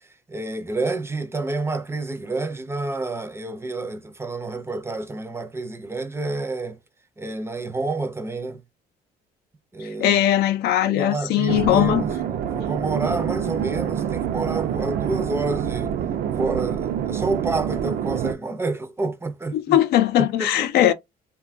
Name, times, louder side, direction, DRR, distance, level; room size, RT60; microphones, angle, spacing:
voice 1, 0.3-6.8 7.2-8.6 9.7-10.2 10.8-12.1 12.5-15.9 16.4-19.8 20.2-20.9, right 3 dB, 15° right, 0.5 m, -29 dB
voice 2, 9.8-12.0 19.5-20.9, left 12 dB, 70° left, 0.5 m, -20 dB
sound 1, 11.5-18.3, right 9 dB, 65° right, 0.5 m, -26 dB
2.9 x 2.3 x 2.5 m
cardioid pair, 110°, 17 cm